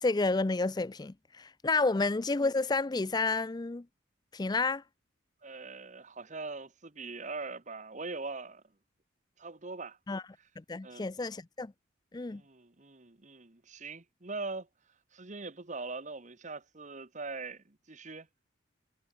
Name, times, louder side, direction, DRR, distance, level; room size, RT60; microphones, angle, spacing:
voice 1, 0.0-3.8 4.3-4.8 10.1-10.2 10.7-11.7 12.1-12.4, left 3 dB, 20° left, 0.4 m, -30 dB
voice 2, 5.4-8.6 9.4-10.0 10.8-11.1 12.3-14.7 15.1-18.3, right 3 dB, 35° right, 1.3 m, -42 dB
head